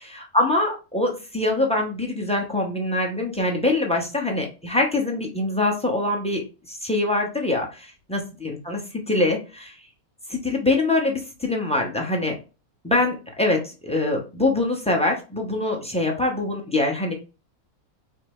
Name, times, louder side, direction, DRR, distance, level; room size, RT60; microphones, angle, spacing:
voice 1, 0.1-8.8 9.1-9.8 10.3-12.4 12.8-17.1, left 2 dB, 5° left, 1 dB, 0.6 m, -24 dB
5.3 x 2.1 x 4.2 m, 0.32 s
omnidirectional pair, 1.5 m